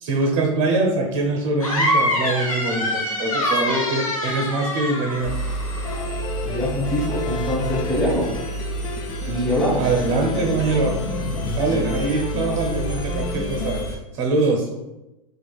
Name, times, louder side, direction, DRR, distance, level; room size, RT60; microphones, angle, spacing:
voice 1, 0.0-5.3 9.8-10.9 11.6-13.8 14.1-14.7, right 2 dB, 45° right, 1 dB, 0.8 m, -23 dB
sound 1, 1.6-6.0, left 1 dB, 80° left, 1.0 m, -24 dB
Engine, 5.2-13.9, right 2 dB, 60° left, 0.8 m, -30 dB
sound 2, 5.8-13.9, left 4 dB, 25° left, 0.4 m, -32 dB
voice 2, 6.4-8.3 9.3-9.9, left 1 dB, ahead, -8 dB, 0.8 m, -23 dB
4.5 x 2.4 x 2.2 m, 0.95 s
figure-of-eight pair, 95°, 18 cm